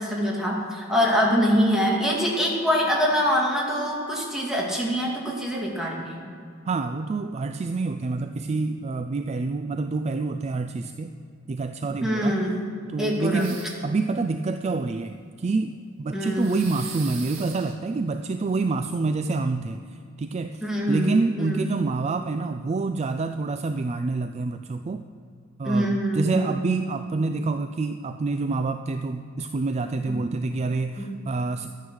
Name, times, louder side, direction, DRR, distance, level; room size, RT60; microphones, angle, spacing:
voice 1, 0.0-6.1 12.0-12.6 13.0-13.5 16.1-16.7 20.6-21.8 25.6-26.6 30.1-30.2 31.0-31.1, equal, ahead, -3 dB, 2.3 m, -24 dB
voice 2, 6.7-11.1 11.5-12.4 12.9-25.0 25.6-31.7, right 3 dB, 30° right, 8 dB, 0.3 m, -27 dB
sound 1, 13.4-14.0 16.4-17.7, right 5 dB, 70° right, 1.9 m, -40 dB
12.5 x 9.4 x 6.3 m, 2.5 s
head